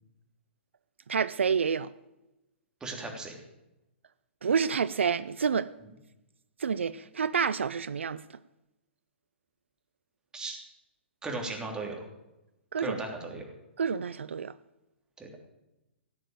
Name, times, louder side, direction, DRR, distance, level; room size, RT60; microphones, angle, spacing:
voice 1, 1.1-1.9 4.4-5.7 6.6-8.2 12.7-13.0 13.8-14.5, right 6 dB, 75° right, 0.5 m, -28 dB
voice 2, 2.8-3.4 10.3-10.6 11.2-12.0 12.8-13.5 15.2-15.3, right 3 dB, 10° right, 3.2 m, -36 dB
17.0 x 6.6 x 8.9 m
figure-of-eight pair, 120°, 7 cm